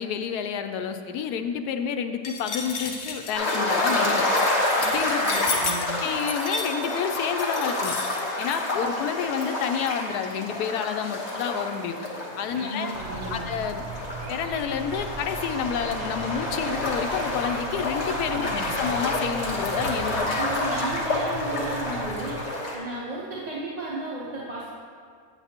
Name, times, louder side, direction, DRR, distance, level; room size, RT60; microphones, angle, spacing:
voice 1, 0.0-4.2 4.7-5.2 5.8-8.0 8.4-12.0 12.4-12.9 13.3-13.8 14.3-20.5, left 7 dB, 85° left, 7 dB, 1.1 m, -29 dB
sound 1, 2.2-8.6, left 4 dB, 65° left, 1.1 m, -33 dB
sound 2, 3.3-22.8, left 2 dB, 50° left, 1.3 m, -28 dB
voice 2, 5.2-6.0 12.5-13.5 18.3-18.7 20.2-22.4 22.7-24.6, right 2 dB, 30° right, -8 dB, 0.9 m, -34 dB
sound 3, 12.9-22.4, right 4 dB, 65° right, 0.9 m, -38 dB
9.0 x 8.0 x 2.8 m, 2.1 s
omnidirectional pair, 1.6 m